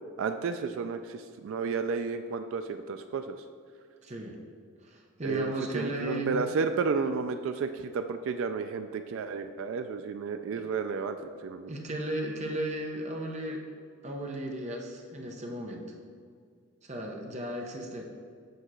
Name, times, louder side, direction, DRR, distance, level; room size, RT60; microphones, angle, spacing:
voice 1, 0.2-3.4 5.2-11.2 11.4-11.8, right 5 dB, 65° right, 8 dB, 0.3 m, -32 dB
voice 2, 4.0-4.4 4.8-6.4 10.5-10.6 11.7-13.7 14.0-15.9 16.8-18.0, right 1 dB, 30° right, 1 dB, 0.7 m, -35 dB
7.8 x 2.9 x 6.1 m, 2.1 s
head